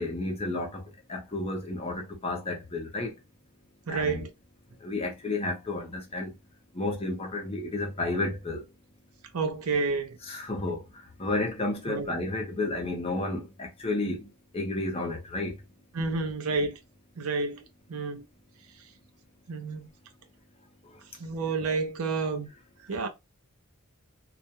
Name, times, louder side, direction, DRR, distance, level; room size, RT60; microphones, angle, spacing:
voice 1, 0.0-3.1 3.9-4.3 4.8-6.3 6.7-8.7 10.2-15.6 20.8-21.0, left 2 dB, 25° left, 0.6 m, -32 dB
voice 2, 3.9-4.3 9.3-10.2 11.9-12.1 15.9-16.8 17.2-17.6 17.9-18.3 19.5-19.9 21.2-22.5 22.9-23.1, right 4 dB, 85° right, 0.5 m, -29 dB
2.3 x 2.1 x 2.7 m
head